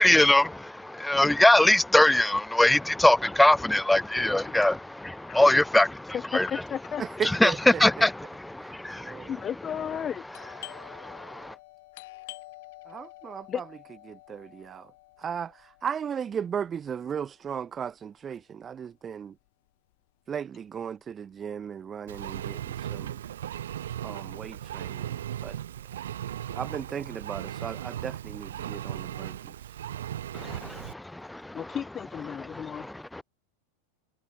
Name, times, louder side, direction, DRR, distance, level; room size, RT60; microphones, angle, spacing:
voice 1, 0.0-6.5 7.2-7.5 7.8-9.3 10.6-11.5 30.3-31.8 32.5-33.2, left 1 dB, 5° left, 1.7 m, -23 dB
voice 2, 6.1-7.0 9.3-10.2 13.5-13.6 31.5-32.9, left 9 dB, 25° left, 1.4 m, -33 dB
voice 3, 7.0-8.1 8.6-8.7 9.0-9.3 12.9-13.6 14.1-14.9 15.2-19.3 20.3-23.2 24.0-25.6 26.5-29.5, right 7 dB, 20° right, 1.2 m, -36 dB
Doorbell, 10.3-19.7 19.9-20.0 20.7-21.0 21.3-22.7, left 20 dB, 50° left, 5.8 m, -49 dB
Engine, 22.1-30.9, right 11 dB, 60° right, 2.1 m, -37 dB
figure-of-eight pair, 90°, 0 cm